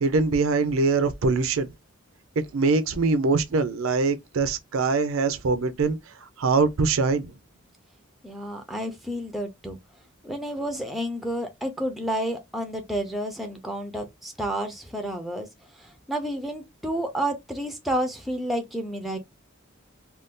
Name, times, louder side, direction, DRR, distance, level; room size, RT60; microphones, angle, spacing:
voice 1, 0.0-1.7 2.4-6.0 6.4-7.3, right 4 dB, 75° right, 0.5 m, -23 dB
voice 2, 8.2-9.8 10.2-15.5 15.8-19.2, right 1 dB, ahead, 0.5 m, -30 dB
2.5 x 2.3 x 3.5 m
head